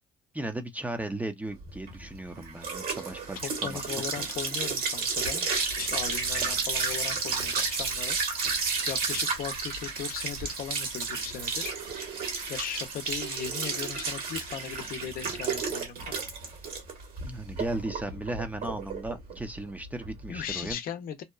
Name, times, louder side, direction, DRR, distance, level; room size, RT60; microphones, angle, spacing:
voice 1, 0.3-4.3 17.2-20.8, right 1 dB, 10° right, 0.5 m, -36 dB
sound 1, 1.6-20.7, right 4 dB, 65° right, 1.3 m, -32 dB
voice 2, 3.4-5.5 5.8-8.2 8.9-11.7 12.5-16.1 20.3-21.2, left 8 dB, 60° left, 0.6 m, -38 dB
2.7 x 2.3 x 2.3 m
cardioid pair, 95°, 16 cm